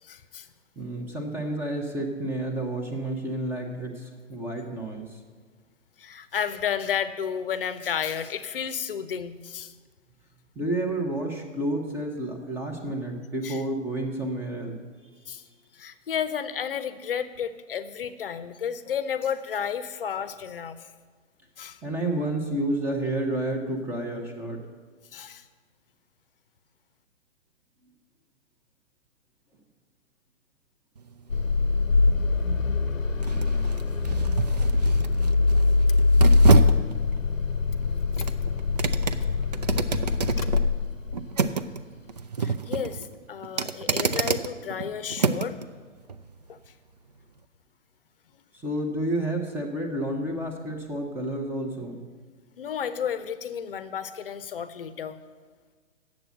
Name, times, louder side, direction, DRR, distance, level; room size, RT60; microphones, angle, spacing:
voice 1, 0.0-0.5 6.0-9.7 13.4-13.6 15.3-15.4 15.7-20.9 21.6-21.8 25.1-25.5 42.4-45.6 46.5-46.6 52.6-55.2, left 8 dB, 45° left, 12 dB, 0.7 m, -32 dB
voice 2, 0.8-5.2 10.5-14.8 21.8-24.6 48.5-52.0, right 1 dB, 5° right, 1 dB, 0.8 m, -30 dB
sound 1, 31.0-45.6 46.1-46.2, right 5 dB, 35° right, 0.4 m, -29 dB
Car / Engine starting, 31.3-41.4, left 3 dB, 90° left, 0.8 m, -23 dB
9.0 x 7.4 x 7.7 m, 1.5 s
figure-of-eight pair, 130°, 38 cm